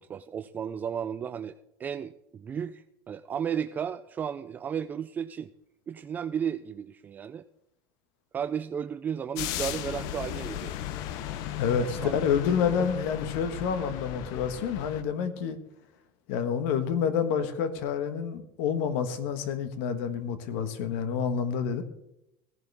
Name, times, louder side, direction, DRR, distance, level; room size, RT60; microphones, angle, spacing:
voice 1, 0.0-1.5 1.8-5.5 5.9-7.4 8.3-10.7 11.8-12.2 12.8-12.9, right 8 dB, 25° right, 11 dB, 0.4 m, -34 dB
sound 1, 9.4-15.0, left 12 dB, 65° left, 0.8 m, -36 dB
voice 2, 11.6-15.6 16.3-21.8, left 7 dB, 80° left, 10 dB, 1.4 m, -28 dB
17.0 x 11.0 x 3.5 m, 0.83 s
cardioid pair, 140°, 7 cm